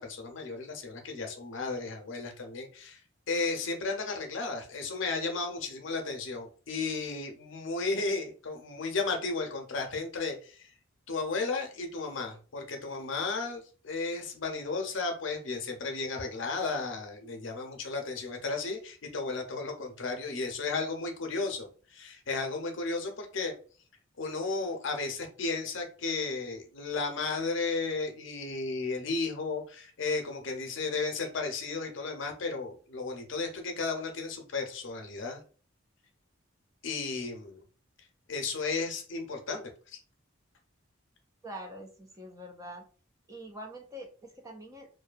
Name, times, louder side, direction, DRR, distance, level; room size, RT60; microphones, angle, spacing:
voice 1, 0.0-3.0 3.3-10.7 11.1-23.5 24.2-35.4 36.8-37.6 38.3-40.0, left 3 dB, 70° left, 3 dB, 0.6 m, -34 dB
voice 2, 41.4-42.8 43.3-44.9, right 1 dB, 15° right, 2 dB, 0.3 m, -44 dB
2.6 x 2.2 x 2.4 m, 0.39 s
head